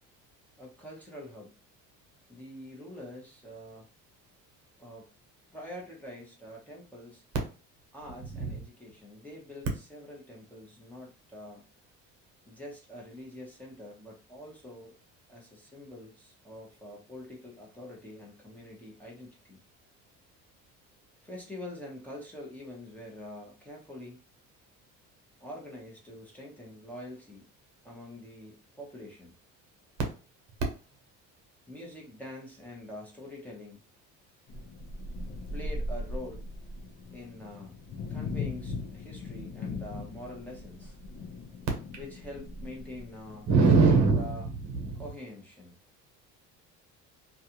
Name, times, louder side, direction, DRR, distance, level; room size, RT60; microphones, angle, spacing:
voice 1, 0.6-1.6 2.3-3.9 4.8-5.1 5.5-7.2 7.9-11.7 12.4-15.0 15.3-19.6 21.2-24.2 25.4-27.5 27.8-29.3 31.7-33.8 35.5-36.5 37.1-37.8 38.1-41.0 42.0-43.5 43.9-44.5 44.9-45.7, left 1 dB, 5° left, -3 dB, 0.9 m, -45 dB
sound 1, 34.5-44.1, left 2 dB, 45° left, 0.7 m, -39 dB
voice 2, 43.5-44.4 44.7-45.0, right 4 dB, 60° right, 2 dB, 0.9 m, -22 dB
2.4 x 2.4 x 2.9 m, 0.35 s
cardioid pair, 100°, 31 cm